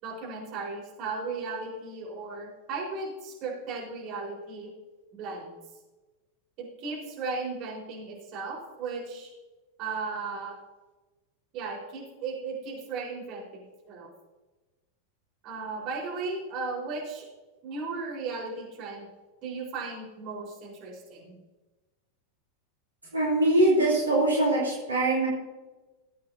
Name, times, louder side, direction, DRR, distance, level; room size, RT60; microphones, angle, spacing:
voice 1, 0.0-4.7 5.1-5.5 6.6-9.3 9.8-10.6 11.5-14.1 15.4-17.3 17.6-19.1 19.4-21.4, right 4 dB, 40° right, -3 dB, 4.4 m, -36 dB
voice 2, 23.1-25.3, right 1 dB, 80° right, -5 dB, 3.0 m, -23 dB
19.0 x 8.7 x 2.7 m, 1.2 s
figure-of-eight pair, 90°, 0 cm